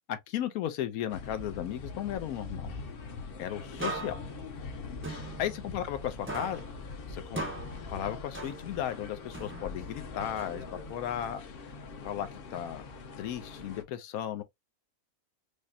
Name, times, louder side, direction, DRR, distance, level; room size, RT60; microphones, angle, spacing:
voice 1, 0.1-2.7 3.4-4.2 5.4-6.7 7.1-7.4 7.9-11.4 12.0-12.8 13.2-14.4, left 10 dB, 85° left, 1.1 m, -35 dB
sound 1, 1.1-13.8, left 4 dB, 55° left, 0.7 m, -43 dB
sound 2, 3.8-6.0 6.3-8.9 9.3-11.0, right 2 dB, 15° right, 0.4 m, -41 dB
4.9 x 2.1 x 2.6 m
omnidirectional pair, 1.5 m